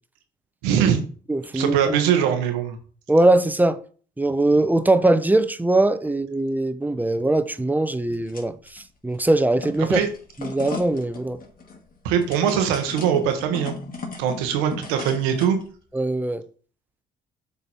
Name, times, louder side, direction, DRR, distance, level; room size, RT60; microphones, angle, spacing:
voice 1, 0.6-1.0 1.5-2.8 9.9-10.1 12.0-13.7 14.2-15.6, right 8 dB, 90° right, 1.2 m, -21 dB
voice 2, 1.3-1.8 3.1-3.8 4.2-10.0 10.4-11.4 15.9-16.4, right 2 dB, 10° right, 0.7 m, -21 dB
sound 1, 8.1-8.8 9.1-15.6, left 4 dB, 40° left, 1.9 m, -37 dB
6.8 x 4.1 x 4.3 m
supercardioid pair, 60°, 21 cm